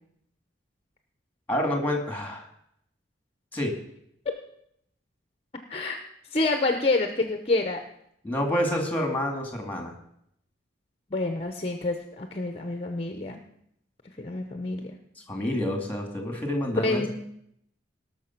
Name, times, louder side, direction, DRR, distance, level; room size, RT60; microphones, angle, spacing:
voice 1, 1.5-2.5 3.5-3.7 8.2-9.9 15.3-17.1, left 1 dB, 10° left, 3 dB, 2.4 m, -28 dB
voice 2, 6.3-7.8 11.1-13.4 14.2-15.0 16.8-17.1, left 2 dB, 30° left, 6 dB, 0.9 m, -27 dB
17.5 x 6.5 x 6.0 m, 0.73 s
head